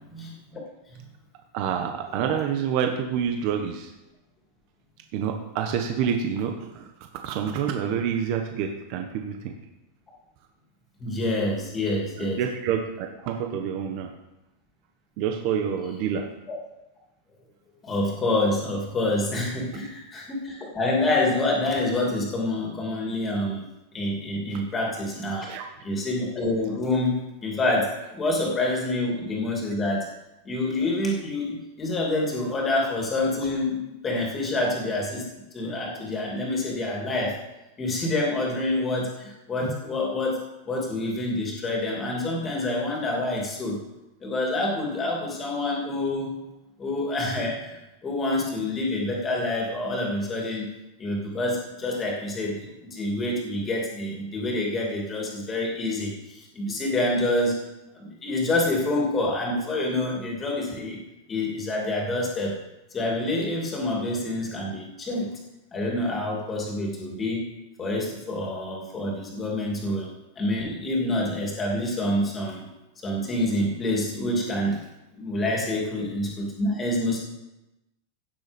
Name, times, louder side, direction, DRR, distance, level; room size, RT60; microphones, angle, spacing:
voice 1, 0.1-1.0 11.0-12.4 16.5-16.6 17.8-23.6 23.9-25.5 25.8-30.1 30.4-35.2 35.5-37.4 37.8-43.8 44.2-46.4 46.8-50.7 51.0-57.6 57.9-61.0 61.3-62.6 62.9-65.3 65.7-67.5 67.8-70.1 70.4-72.7 73.0-74.8 75.1-77.2, left 2 dB, 15° left, -1 dB, 2.7 m, -27 dB
voice 2, 1.5-3.9 5.1-6.9 7.2-9.5 12.2-14.1 15.2-16.3 25.5-25.6, right 8 dB, 40° right, 4 dB, 1.2 m, -27 dB
16.0 x 6.9 x 5.3 m, 0.96 s
supercardioid pair, 170°, 0 cm